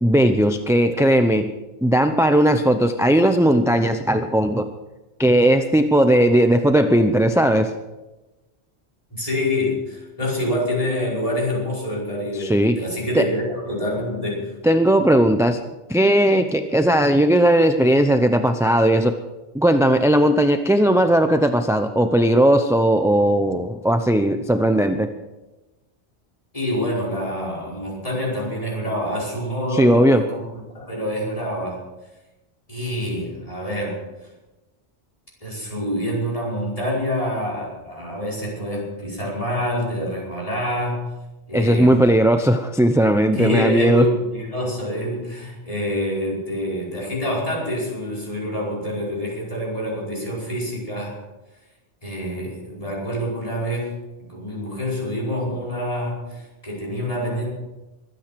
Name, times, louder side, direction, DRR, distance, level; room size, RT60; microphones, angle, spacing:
voice 1, 0.0-1.5 1.8-4.7 5.2-7.7 12.4-12.8 13.1-13.3 14.6-15.6 15.9-19.1 19.5-25.1 29.7-30.2 41.5-44.1, right 1 dB, 5° right, 7 dB, 0.6 m, -17 dB
voice 2, 9.1-14.5 26.5-30.5 30.7-31.8 32.7-34.0 35.4-41.1 41.5-42.0 43.3-51.2 52.0-54.0 54.3-57.5, left 1 dB, 30° left, -4 dB, 5.4 m, -26 dB
23.0 x 9.2 x 6.0 m, 1.1 s
omnidirectional pair, 1.2 m